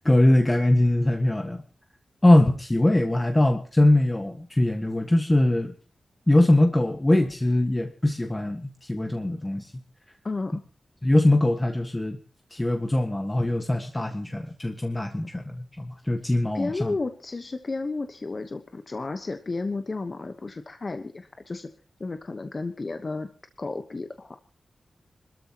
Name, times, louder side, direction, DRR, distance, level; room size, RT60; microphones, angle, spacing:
voice 1, 0.0-1.6 2.2-5.7 6.3-9.7 11.0-12.2 12.5-16.9, left 1 dB, 20° left, 5 dB, 1.6 m, -22 dB
voice 2, 10.2-10.6 16.5-21.7 22.0-23.3 23.6-24.4, left 3 dB, 45° left, 8 dB, 1.1 m, -32 dB
26.5 x 13.5 x 3.0 m, 0.39 s
wide cardioid pair, 75°, 0 cm